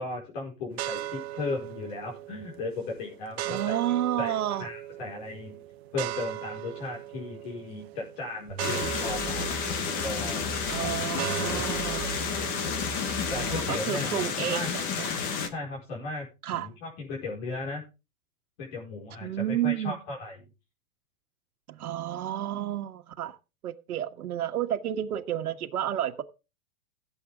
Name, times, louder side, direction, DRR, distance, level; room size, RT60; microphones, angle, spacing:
voice 1, 0.0-3.8 4.2-4.3 4.6-5.6 5.9-9.7 10.0-10.4 10.8-11.0 11.6-11.8 13.3-14.1 14.5-14.7 15.4-16.3 16.5-17.8 18.6-20.3, left 3 dB, 45° left, 4.9 m, -36 dB
sound 1, 0.7-13.6, right 14 dB, 45° right, 0.9 m, -39 dB
voice 2, 3.5-4.7 10.7-12.1 13.4-14.7 15.0-15.1 16.4-16.7 19.2-20.0 21.7-23.3 23.6-26.2, right 11 dB, 85° right, 1.6 m, -31 dB
sound 2, 8.5-13.9, right 3 dB, 10° right, 2.7 m, -40 dB
sound 3, 8.6-15.5, left 6 dB, 20° left, 1.0 m, -31 dB
16.5 x 8.0 x 3.6 m
supercardioid pair, 170°, 43 cm